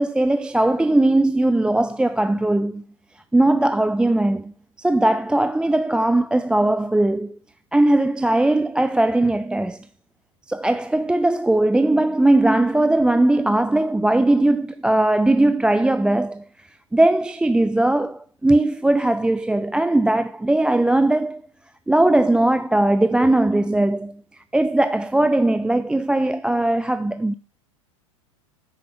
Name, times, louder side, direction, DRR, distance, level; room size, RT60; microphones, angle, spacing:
voice 1, 0.0-2.8 3.3-4.5 4.8-7.4 7.7-9.8 10.5-16.4 16.9-21.4 21.9-24.1 24.5-27.3, right 1 dB, 5° right, 0.4 m, -19 dB
9.4 x 8.6 x 5.7 m
hypercardioid pair, 95°, 17 cm